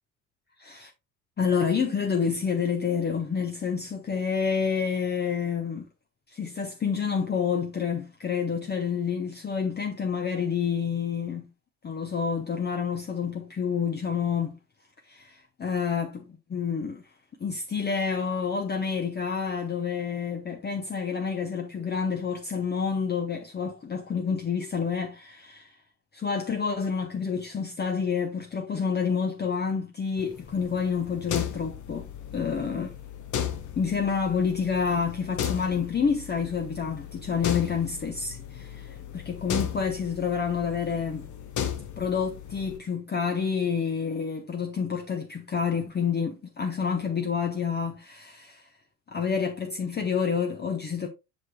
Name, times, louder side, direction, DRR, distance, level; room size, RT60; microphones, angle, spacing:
voice 1, 0.6-0.9 1.4-5.9 6.3-11.5 11.8-14.6 15.1-17.0 17.4-25.7 26.1-32.1 32.3-32.9 33.8-41.3 42.0-48.7 49.1-51.1, left 6 dB, 20° left, 0.8 m, -28 dB
sound 1, 30.2-42.8, left 9 dB, 40° left, 1.1 m, -36 dB
7.4 x 6.0 x 2.2 m
figure-of-eight pair, 60°, 45 cm